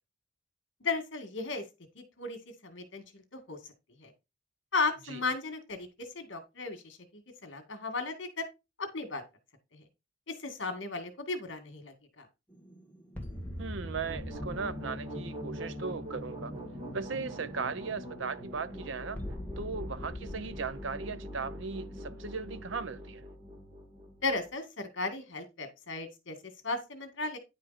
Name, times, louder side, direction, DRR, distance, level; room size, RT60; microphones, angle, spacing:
voice 1, 0.8-1.6 2.0-3.6 4.0-4.1 4.7-8.4 8.8-9.2 9.7-9.8 10.3-12.3 24.2-26.4 26.6-27.4, left 3 dB, 60° left, 2.0 m, -35 dB
sound 1, 12.5-23.0, left 1 dB, 10° left, 1.6 m, -45 dB
voice 2, 13.6-16.6 16.9-23.2, right 5 dB, 65° right, 0.6 m, -37 dB
sound 2, 13.8-24.5, equal, 25° right, 2.2 m, -43 dB
10.0 x 5.1 x 4.1 m
head